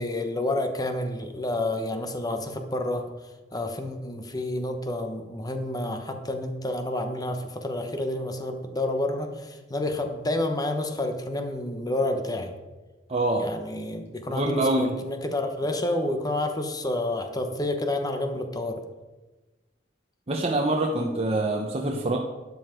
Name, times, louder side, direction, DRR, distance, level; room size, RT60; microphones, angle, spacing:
voice 1, 0.0-3.0 3.5-12.5 13.4-18.8, left 1 dB, 20° left, 6 dB, 1.0 m, -29 dB
voice 2, 13.1-13.4 14.3-14.9 20.3-22.2, right 2 dB, 35° right, 0 dB, 1.0 m, -25 dB
12.5 x 8.2 x 4.5 m, 1.2 s
head